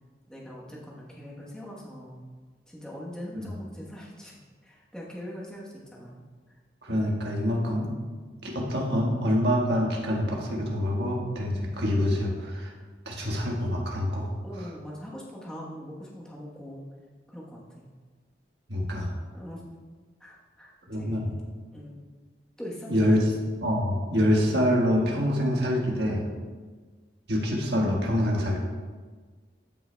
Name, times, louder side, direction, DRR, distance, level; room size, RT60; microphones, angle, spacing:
voice 1, 0.3-2.2 2.7-6.2 14.4-16.8 17.3-17.8 19.3-19.6 20.2-21.4 21.7-22.0 22.6-23.2, equal, 5° left, -5 dB, 1.0 m, -42 dB
voice 2, 6.8-7.9 8.4-12.7 13.0-14.3 18.7-19.1 20.9-21.2 22.9-23.2 23.6-26.2 27.3-28.6, equal, 75° right, -2 dB, 1.4 m, -26 dB
12.5 x 5.5 x 2.2 m, 1.4 s
head